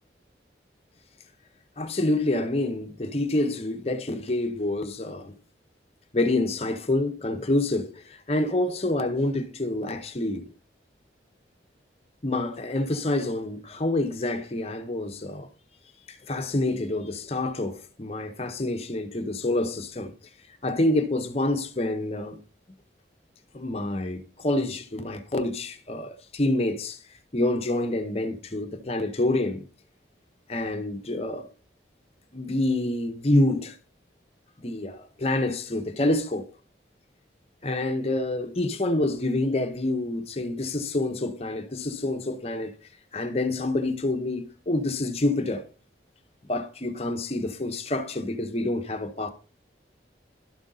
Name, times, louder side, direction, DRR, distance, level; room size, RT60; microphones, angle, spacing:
voice 1, 1.8-5.3 6.1-10.5 12.2-15.5 16.1-20.1 20.6-22.4 23.5-27.0 27.3-29.7 30.5-31.5 32.3-33.8 34.6-36.5 37.6-42.7 43.1-45.7 46.5-49.3, left 2 dB, 35° left, 0.8 m, -27 dB
12.0 x 5.2 x 3.9 m
head